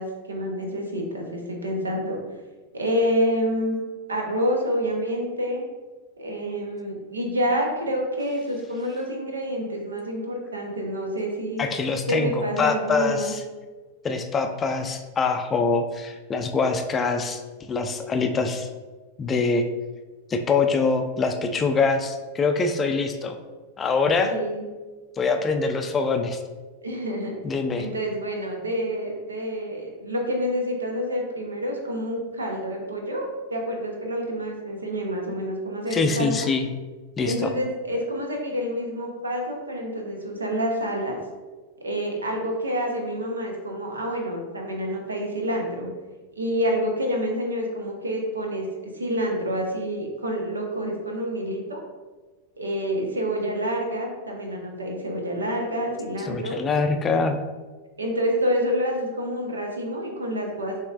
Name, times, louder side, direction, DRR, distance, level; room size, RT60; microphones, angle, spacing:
voice 1, 0.0-2.2 2.7-3.8 4.1-5.6 6.2-11.7 12.1-13.3 24.2-24.6 26.8-27.3 27.8-36.4 37.2-41.2 41.8-45.9 46.4-51.8 52.6-56.6 58.0-60.8, equal, 75° right, 1 dB, 0.8 m, -28 dB
voice 2, 11.6-13.4 14.0-17.4 17.7-18.7 19.2-19.6 20.3-23.4 23.8-24.3 25.2-26.4 27.4-27.9 35.9-36.7 37.2-37.5 56.3-57.4, left 4 dB, 20° left, 5 dB, 0.4 m, -24 dB
6.3 x 2.9 x 2.4 m, 1.3 s
figure-of-eight pair, 90°, 0 cm